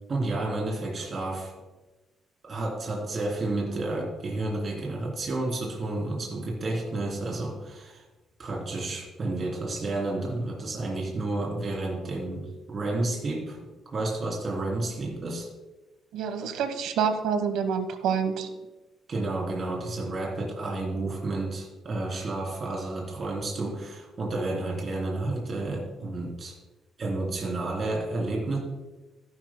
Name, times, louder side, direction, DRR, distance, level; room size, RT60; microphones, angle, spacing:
voice 1, 0.1-1.5 2.5-8.0 8.4-13.6 13.9-15.5 19.1-26.5 27.0-28.6, right 2 dB, 35° right, -2 dB, 3.3 m, -31 dB
voice 2, 16.1-18.5, right 6 dB, 90° right, 9 dB, 1.1 m, -27 dB
14.5 x 12.0 x 2.2 m, 1.1 s
cardioid pair, 140°, 0 cm